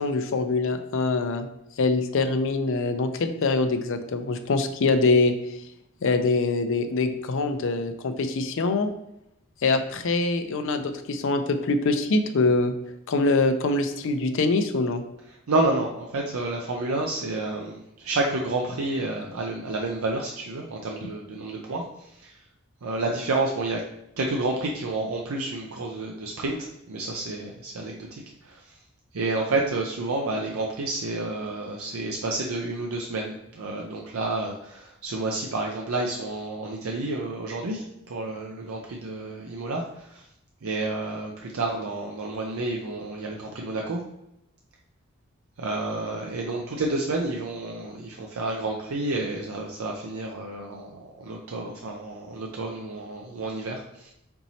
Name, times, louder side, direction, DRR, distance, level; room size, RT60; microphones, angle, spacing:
voice 1, 0.0-1.5 1.8-5.3 6.0-8.9 9.6-12.7 13.1-15.0, left 3 dB, 65° left, 8 dB, 0.5 m, -24 dB
voice 2, 15.5-22.4 22.8-23.8 24.2-28.8 29.1-40.3 40.6-44.0 45.6-54.1, right 2 dB, 85° right, 0 dB, 0.5 m, -30 dB
4.4 x 4.1 x 2.7 m, 0.82 s
head